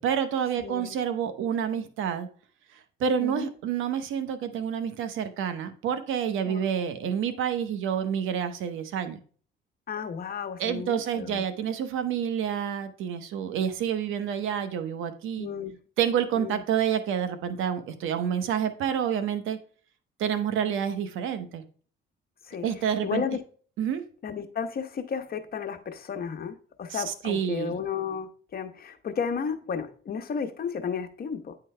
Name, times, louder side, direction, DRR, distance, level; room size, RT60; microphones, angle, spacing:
voice 1, 0.0-2.3 2.7-9.2 10.6-15.5 16.0-19.6 20.2-21.6 22.6-23.2 23.8-24.0 26.9-27.8, right 8 dB, 85° right, 0.8 m, -28 dB
voice 2, 0.6-0.9 3.2-3.5 6.4-6.7 9.9-11.4 15.4-15.8 16.3-16.6 22.5-22.7 23.0-23.4 24.2-31.6, left 6 dB, 50° left, 0.9 m, -33 dB
9.4 x 3.9 x 3.2 m
cardioid pair, 90°, 20 cm